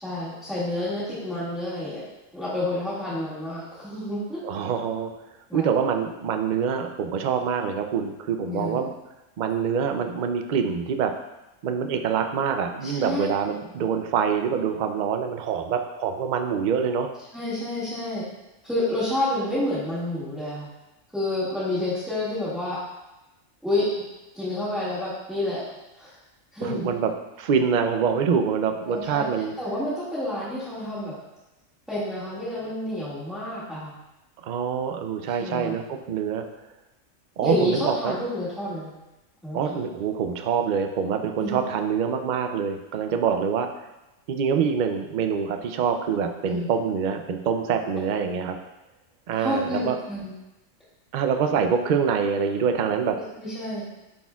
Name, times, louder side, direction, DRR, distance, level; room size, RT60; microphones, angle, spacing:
voice 1, 0.0-2.0 2.3-4.4 5.5-5.7 8.5-8.8 12.8-13.2 17.3-18.3 18.6-20.7 21.1-22.8 23.6-24.1 24.3-25.6 26.0-26.1 26.5-26.9 28.8-29.3 29.6-31.1 31.9-33.9 35.4-35.7 37.4-38.9 39.4-39.6 41.4-41.6 46.5-46.7 49.4-50.3 53.1-53.9, left 1 dB, ahead, -13 dB, 1.8 m, -29 dB
voice 2, 4.4-5.1 5.5-8.9 9.4-11.1 11.6-17.1 26.6-27.1 27.4-29.5 34.4-36.4 37.4-38.2 39.5-43.9 44.3-48.6 49.3-50.0 51.1-53.2, right 6 dB, 70° right, 5 dB, 0.4 m, -25 dB
9.5 x 4.2 x 2.3 m, 0.98 s
omnidirectional pair, 1.4 m